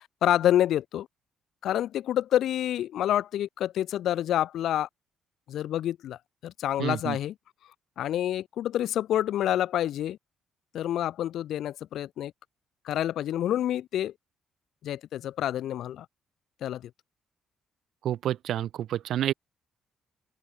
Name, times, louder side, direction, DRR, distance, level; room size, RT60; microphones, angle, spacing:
voice 1, 0.2-1.1 1.6-4.9 5.5-7.3 8.0-10.2 10.7-12.3 12.8-14.1 14.8-16.0 16.6-16.9, left 11 dB, 75° left, 1.6 m, -28 dB
voice 2, 6.8-7.2 18.0-19.3, right 11 dB, 75° right, 0.3 m, -29 dB
open air
cardioid pair, 90°, 0 cm